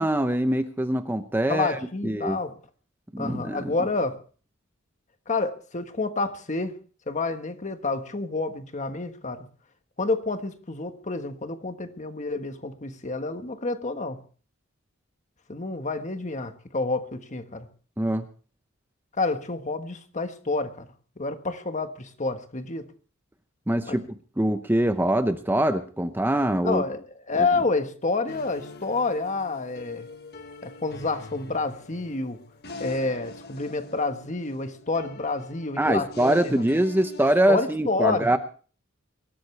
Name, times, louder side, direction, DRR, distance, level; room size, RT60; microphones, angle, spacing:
voice 1, 0.0-2.4 3.1-3.7 18.0-18.3 23.7-24.1 24.4-26.8 35.8-38.4, right 1 dB, 10° right, 9 dB, 0.7 m, -24 dB
voice 2, 1.5-2.6 3.2-4.2 5.3-6.7 7.1-9.5 10.0-14.2 15.5-17.7 19.2-20.9 21.2-22.9 23.9-24.0 26.6-30.1 30.6-32.4 32.8-36.6 37.5-38.4, left 3 dB, 35° left, 8 dB, 1.4 m, -29 dB
sound 1, 28.3-37.3, left 3 dB, 50° left, 1.4 m, -43 dB
24.0 x 13.5 x 3.3 m, 0.39 s
head